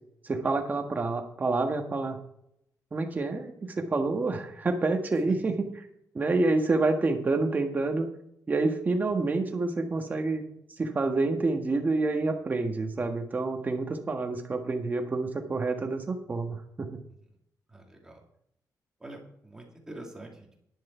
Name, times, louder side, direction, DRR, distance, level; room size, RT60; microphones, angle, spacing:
voice 1, 0.2-2.2 2.9-5.7 6.1-8.1 8.5-10.4 10.8-16.9, right 3 dB, 25° right, 4 dB, 1.6 m, -28 dB
voice 2, 17.7-18.2 19.0-20.5, right 1 dB, 10° right, 1 dB, 2.4 m, -45 dB
10.5 x 10.5 x 4.5 m, 0.74 s
wide cardioid pair, 160°, 6 cm